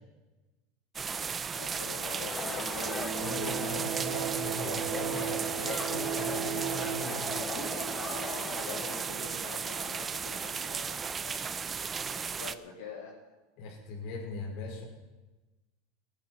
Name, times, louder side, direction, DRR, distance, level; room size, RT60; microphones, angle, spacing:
sound 1, 1.0-12.6, right 6 dB, 25° right, 0.6 m, -35 dB
voice 1, 1.5-3.0 8.0-11.7 12.0-13.1, left 5 dB, 85° left, -3 dB, 2.9 m, -45 dB
sound 2, 2.2-9.0, left 6 dB, 30° left, 1.0 m, -41 dB
sound 3, 2.3-10.9, right 10 dB, 55° right, 1.3 m, -38 dB
voice 2, 3.2-7.4 13.6-14.9, left 3 dB, 60° left, 1 dB, 4.9 m, -40 dB
18.0 x 10.0 x 5.8 m, 1.1 s
supercardioid pair, 110°, 0 cm